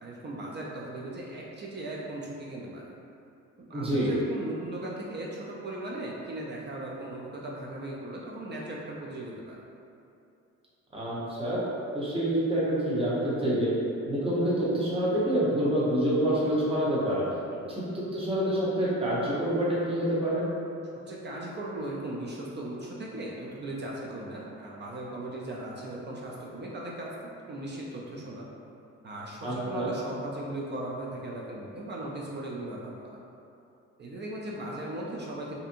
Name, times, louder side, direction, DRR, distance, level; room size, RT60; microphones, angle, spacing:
voice 1, 0.0-2.9 3.6-9.6 17.5-17.7 20.9-28.5 29.0-33.2 34.0-35.6, right 1 dB, 35° right, -3 dB, 0.4 m, -38 dB
voice 2, 3.7-4.1 10.9-11.6 11.9-13.7 14.1-17.2 17.7-20.5 29.4-29.9, right 1 dB, 20° right, -8 dB, 0.8 m, -27 dB
2.6 x 2.5 x 2.5 m, 2.6 s
cardioid pair, 90°, 30 cm